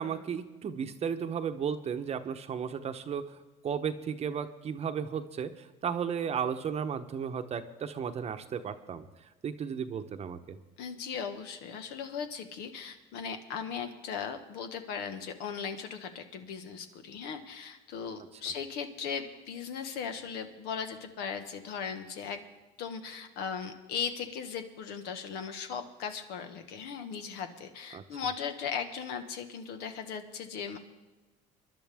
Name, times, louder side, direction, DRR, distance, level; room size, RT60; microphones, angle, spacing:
voice 1, 0.0-10.6 27.9-28.0, right 7 dB, 40° right, 9 dB, 0.9 m, -34 dB
voice 2, 10.8-22.4 22.8-30.8, left 6 dB, 75° left, 7 dB, 1.5 m, -38 dB
23.5 x 11.5 x 3.6 m, 1.1 s
supercardioid pair, 105°, 17 cm